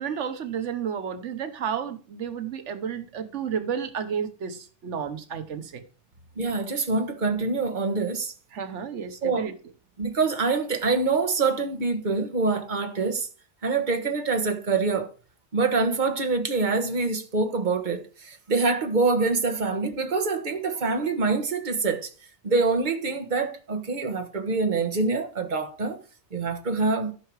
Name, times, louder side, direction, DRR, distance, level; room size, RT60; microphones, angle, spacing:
voice 1, 0.0-5.8 8.5-9.5, right 7 dB, 85° right, 1.2 m, -31 dB
voice 2, 6.4-8.3 9.2-9.5 10.0-13.3 13.6-15.1 15.5-22.1 22.4-26.0 26.3-27.1, right 4 dB, 45° right, 1.4 m, -25 dB
14.0 x 5.7 x 4.7 m
omnidirectional pair, 1.2 m